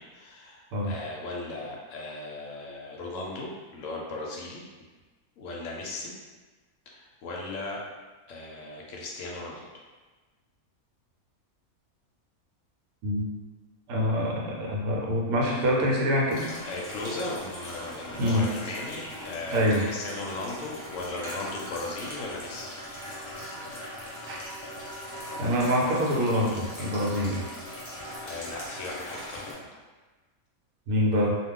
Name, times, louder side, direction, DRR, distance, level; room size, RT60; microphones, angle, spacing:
voice 1, 0.0-4.7 5.4-6.1 6.9-7.8 8.3-9.8 16.7-22.7 28.2-29.8, left 2 dB, 65° left, -2 dB, 0.8 m, -37 dB
voice 2, 13.9-16.5 18.2-18.5 19.5-19.9 24.3-24.4 25.4-27.5 30.9-31.4, equal, 75° right, -2 dB, 1.1 m, -25 dB
sound 1, 16.3-29.5, left 1 dB, 40° left, 0.8 m, -40 dB
2.3 x 2.3 x 3.6 m, 1.3 s
omnidirectional pair, 1.6 m